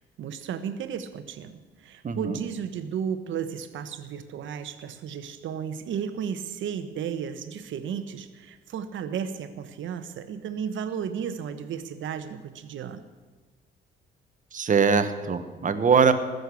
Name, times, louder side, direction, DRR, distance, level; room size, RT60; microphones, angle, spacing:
voice 1, 0.0-13.0, right 7 dB, 75° right, 10 dB, 1.1 m, -34 dB
voice 2, 2.0-2.4 14.5-16.1, right 6 dB, 40° right, 10 dB, 1.3 m, -22 dB
19.5 x 6.7 x 8.3 m, 1.3 s
cardioid pair, 90°, 20 cm